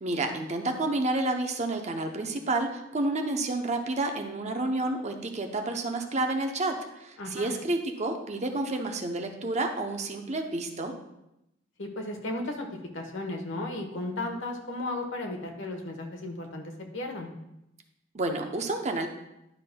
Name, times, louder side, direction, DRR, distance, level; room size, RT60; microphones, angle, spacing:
voice 1, 0.0-10.9 18.1-19.1, right 2 dB, 40° right, 4 dB, 0.7 m, -30 dB
voice 2, 7.2-7.5 11.8-17.3, left 2 dB, 80° left, 3 dB, 1.2 m, -35 dB
11.0 x 5.9 x 2.2 m, 0.86 s
head